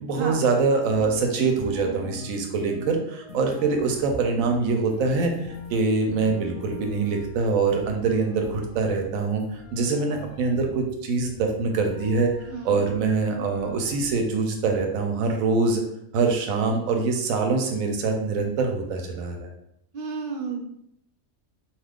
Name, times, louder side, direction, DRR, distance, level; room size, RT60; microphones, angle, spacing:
voice 1, 0.0-12.3 12.6-15.8 16.1-19.5, right 4 dB, 85° right, 3 dB, 1.0 m, -24 dB
sound 1, 0.8-14.2, left 2 dB, 45° left, 0.4 m, -42 dB
voice 2, 12.5-12.8 19.9-20.6, right 4 dB, 60° right, 2 dB, 0.6 m, -31 dB
2.8 x 2.4 x 3.5 m, 0.76 s
omnidirectional pair, 1.4 m